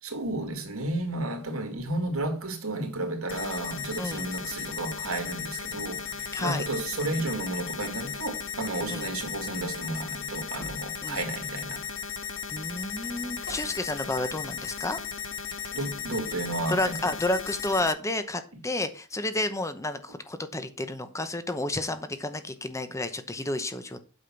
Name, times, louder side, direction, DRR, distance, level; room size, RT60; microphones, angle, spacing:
voice 1, 0.0-11.8 15.7-16.9, right 2 dB, 70° right, 2.2 m, -32 dB
sound 1, 3.3-17.9, left 7 dB, 65° left, 1.3 m, -36 dB
voice 2, 4.0-4.3 6.3-6.7 8.9-9.1 11.0-11.2 12.5-15.0 16.7-24.0, left 2 dB, 15° left, 0.8 m, -31 dB
sound 2, 10.5-10.9 12.4-12.5 12.7-14.0 14.6-15.1 15.5-16.0, equal, 85° left, 5.0 m, -48 dB
8.6 x 5.7 x 5.8 m
head